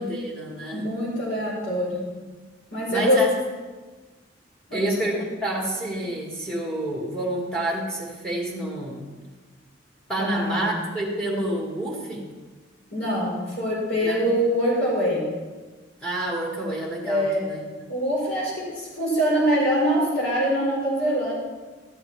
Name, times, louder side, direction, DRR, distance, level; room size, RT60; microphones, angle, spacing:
voice 1, 0.0-0.9 2.9-3.3 4.7-9.1 10.1-12.3 14.0-14.2 16.0-17.7, right 1 dB, 5° left, -2 dB, 1.9 m, -28 dB
voice 2, 0.7-2.0 2.7-3.2 4.7-4.8 10.2-10.7 12.9-15.3 17.0-17.5 17.9-21.3, equal, 75° left, -7 dB, 4.4 m, -24 dB
13.5 x 10.5 x 3.4 m, 1.3 s
head